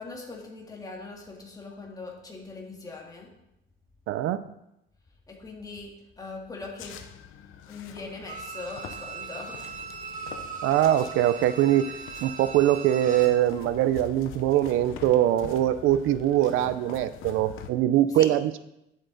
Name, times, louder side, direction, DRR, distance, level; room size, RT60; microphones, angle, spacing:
voice 1, 0.0-3.3 5.3-7.0 7.7-9.6 18.1-18.3, left 3 dB, 20° left, -1 dB, 2.0 m, -41 dB
voice 2, 4.1-4.4 10.6-18.6, right 12 dB, 90° right, 14 dB, 0.6 m, -23 dB
sound 1, 6.8-17.7, left 9 dB, 90° left, 0.8 m, -45 dB
Bowed string instrument, 8.3-13.5 13.8-13.9, right 5 dB, 40° right, 1.6 m, -39 dB
10.5 x 7.8 x 4.0 m, 0.85 s
cardioid pair, 125°, 20 cm